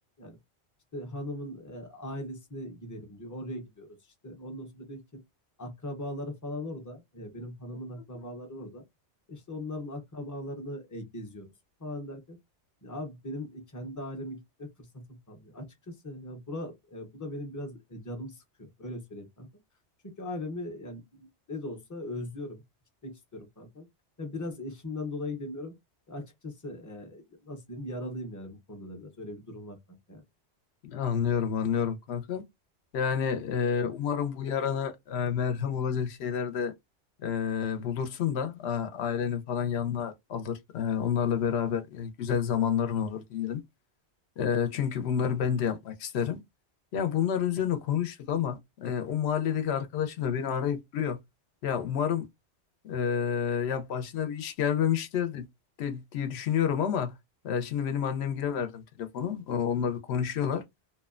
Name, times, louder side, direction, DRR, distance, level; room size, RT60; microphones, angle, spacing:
voice 1, 0.9-5.2 5.6-8.8 9.3-11.5 11.8-12.4 12.8-19.5 20.0-22.6 23.0-23.9 24.2-25.7 26.1-30.2, left 1 dB, 20° left, 0.5 m, -39 dB
voice 2, 30.8-32.4 32.9-36.7 37.2-43.6 44.4-46.4 46.9-51.2 51.6-52.3 52.8-55.5 55.8-57.1 57.4-60.6, left 8 dB, 70° left, 0.8 m, -29 dB
2.7 x 2.1 x 2.3 m
omnidirectional pair, 1.2 m